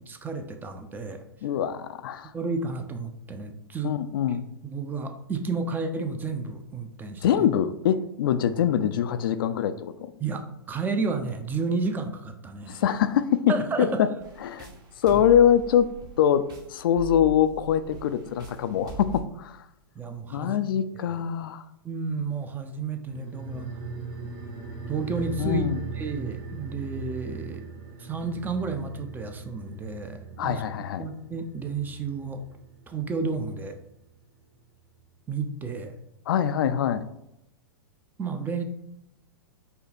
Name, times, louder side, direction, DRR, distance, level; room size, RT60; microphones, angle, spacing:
voice 1, 0.1-1.2 2.3-4.0 4.6-7.5 10.2-12.8 13.5-14.0 15.1-15.2 20.0-20.6 21.8-23.7 24.9-25.6 26.0-27.7 28.0-30.6 31.0-32.4 32.9-33.8 35.3-35.9 38.2-38.6, right 4 dB, 15° right, 7 dB, 0.5 m, -31 dB
voice 2, 1.4-2.3 3.8-4.5 7.2-10.1 12.7-14.1 14.4-14.7 15.0-19.7 20.3-21.7 25.4-25.9 30.4-31.1 36.3-37.1, left 9 dB, 65° left, 11 dB, 0.4 m, -24 dB
sound 1, 14.2-19.2, right 4 dB, 30° right, 0.9 m, -42 dB
sound 2, 23.1-33.9 34.2-34.3, right 5 dB, 65° right, 1.5 m, -39 dB
5.3 x 2.2 x 4.2 m, 0.83 s
hypercardioid pair, 115°, 13 cm